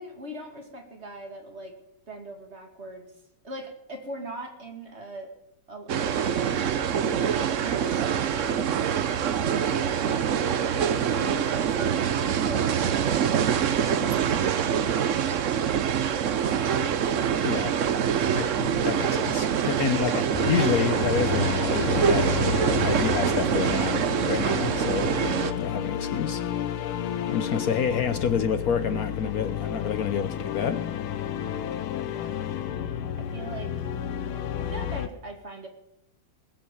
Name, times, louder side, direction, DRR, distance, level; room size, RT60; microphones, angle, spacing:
voice 1, 0.0-1.8 2.1-3.1 3.4-5.3 5.7-7.0 7.5-8.7 9.0-12.0 12.4-15.3 27.2-27.4 32.1-32.3 33.2-33.7 34.6-35.7, right 1 dB, 30° right, 3 dB, 2.6 m, -41 dB
sound 1, 5.9-25.5, right 8 dB, 65° right, 0.7 m, -25 dB
voice 2, 18.3-22.3 22.8-26.4 27.3-30.8, left 7 dB, 65° left, 11 dB, 0.9 m, -29 dB
sound 2, 20.3-35.1, left 8 dB, 85° left, 1.8 m, -31 dB
20.0 x 7.7 x 7.2 m, 0.82 s
omnidirectional pair, 2.3 m